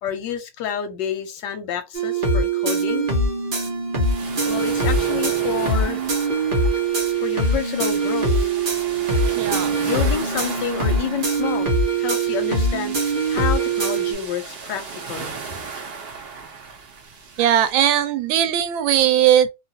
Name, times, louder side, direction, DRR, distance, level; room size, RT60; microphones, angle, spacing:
voice 1, 0.0-3.1 4.4-6.1 7.2-8.5 9.8-11.7 12.0-13.0 13.3-15.3, left 8 dB, 75° left, 1.2 m, -29 dB
sound 1, 1.9-14.1, right 3 dB, 40° right, 0.8 m, -22 dB
sound 2, 4.0-17.7, right 5 dB, 75° right, 0.5 m, -36 dB
voice 2, 9.4-9.8 17.4-19.5, right 10 dB, 90° right, 1.3 m, -18 dB
3.1 x 2.3 x 2.7 m
omnidirectional pair, 2.1 m